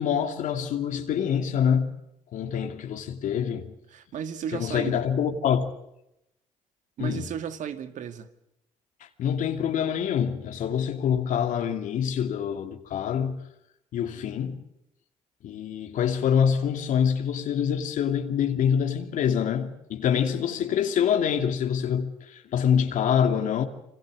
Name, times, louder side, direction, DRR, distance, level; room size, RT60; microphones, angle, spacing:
voice 1, 0.0-1.9 2.3-3.7 4.5-5.7 7.0-7.2 9.2-13.4 13.9-14.6 15.4-23.7, left 8 dB, 75° left, 2.6 m, -25 dB
voice 2, 3.9-5.0 7.0-8.3, right 8 dB, 70° right, 2.1 m, -34 dB
26.5 x 25.0 x 6.4 m
supercardioid pair, 75°, 13 cm